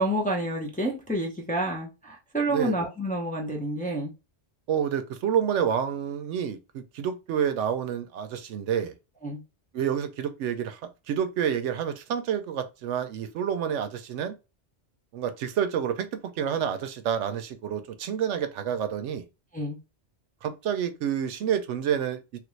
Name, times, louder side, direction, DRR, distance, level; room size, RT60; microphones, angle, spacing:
voice 1, 0.0-4.1 9.2-9.4 19.5-19.8, right 1 dB, 10° left, 0.5 m, -29 dB
voice 2, 4.7-8.9 9.7-10.8 11.1-14.3 15.1-16.1 16.4-19.3 20.4-22.2, right 8 dB, 85° right, 0.9 m, -28 dB
3.3 x 2.5 x 3.1 m
omnidirectional pair, 1.2 m